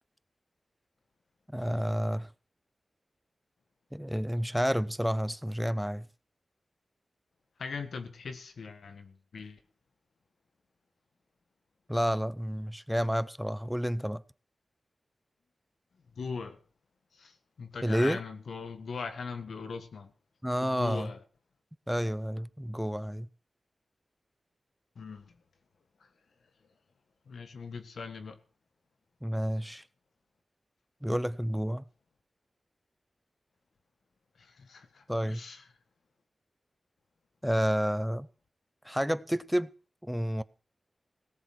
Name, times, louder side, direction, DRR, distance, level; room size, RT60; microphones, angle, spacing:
voice 1, 1.5-2.3 3.9-6.1 11.9-14.2 17.8-18.2 20.4-21.1 21.9-23.3 29.2-29.8 31.0-31.9 35.1-35.4 37.4-38.3 38.8-39.7 40.0-40.4, equal, 5° right, 0.7 m, -30 dB
voice 2, 7.6-9.6 16.1-16.6 17.1-20.1 20.6-21.2 24.9-25.4 26.0-26.1 27.2-28.4 34.4-35.6, left 4 dB, 90° left, 1.6 m, -40 dB
17.5 x 7.6 x 6.1 m
cardioid pair, 55°, 0 cm